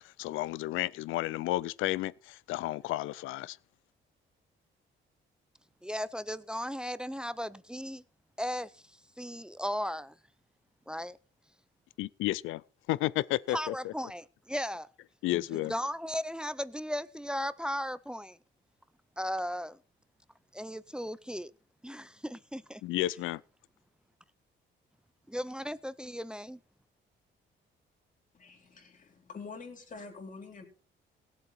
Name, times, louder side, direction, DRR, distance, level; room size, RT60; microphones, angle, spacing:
voice 1, 0.0-3.6 12.0-12.6 12.9-13.9 15.2-15.7 22.8-23.4, left 16 dB, 90° left, 0.5 m, -32 dB
voice 2, 5.8-8.0 8.4-8.7 9.2-10.1 10.9-11.2 13.5-14.9 15.3-18.4 19.2-19.8 20.5-21.5 21.8-22.8 25.3-26.6, equal, 5° right, 0.6 m, -36 dB
voice 3, 28.3-30.7, left 4 dB, 40° left, 3.9 m, -46 dB
18.0 x 7.8 x 4.3 m
cardioid pair, 90°, 20 cm